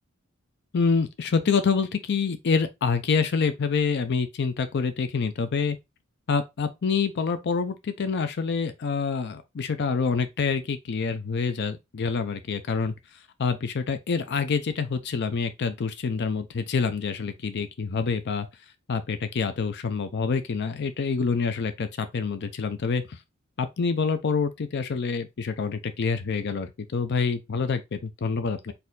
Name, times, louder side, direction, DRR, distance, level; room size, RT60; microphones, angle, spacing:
voice 1, 0.7-5.8 6.3-12.9 13.4-18.5 18.9-23.2 23.6-28.7, left 5 dB, 55° left, 0.5 m, -27 dB
4.2 x 2.7 x 3.8 m
head